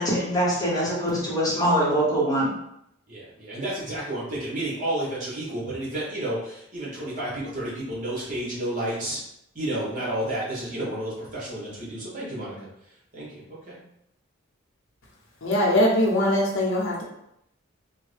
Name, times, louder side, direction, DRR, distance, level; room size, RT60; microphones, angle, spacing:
voice 1, 0.0-2.5, equal, 15° left, -6 dB, 1.0 m, -23 dB
voice 2, 3.1-9.2 9.5-12.7 13.1-13.8, right 1 dB, 40° right, -6 dB, 1.2 m, -31 dB
voice 3, 15.4-17.0, left 1 dB, 70° left, -3 dB, 0.8 m, -21 dB
3.5 x 2.2 x 3.3 m, 0.78 s
head